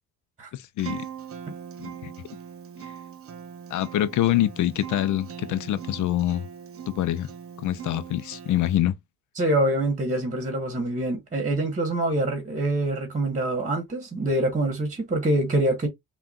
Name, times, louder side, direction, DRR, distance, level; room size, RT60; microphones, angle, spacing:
voice 1, 0.5-1.1 1.8-2.1 2.8-2.9 3.7-6.5 6.9-7.3 7.6-9.0, left 13 dB, 75° left, 0.6 m, -25 dB
Acoustic guitar, 0.8-8.8, right 8 dB, 50° right, 0.9 m, -40 dB
voice 2, 9.4-15.9, right 1 dB, 25° right, 1.4 m, -25 dB
5.6 x 2.5 x 2.4 m
cardioid pair, 90°, 30 cm